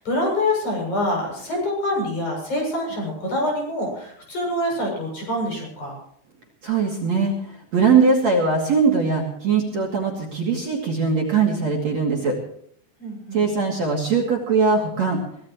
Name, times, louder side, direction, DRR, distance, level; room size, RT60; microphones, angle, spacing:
voice 1, 0.0-6.0 13.0-13.4, left 1 dB, 40° left, 0 dB, 8.8 m, -25 dB
voice 2, 6.6-12.4 13.3-15.2, right 5 dB, 45° right, -1 dB, 2.9 m, -21 dB
23.5 x 18.0 x 3.1 m, 0.66 s
omnidirectional pair, 5.4 m